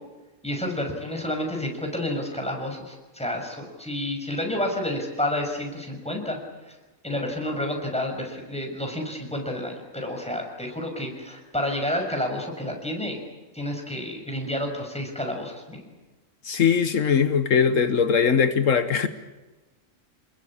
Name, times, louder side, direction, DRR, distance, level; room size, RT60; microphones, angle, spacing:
voice 1, 0.4-6.4 6.6-6.7 7.0-13.2 13.5-15.8, left 1 dB, 5° left, 6.2 m, -30 dB
voice 2, 16.4-19.1, left 6 dB, 75° left, 1.5 m, -21 dB
28.5 x 21.0 x 8.7 m
omnidirectional pair, 1.3 m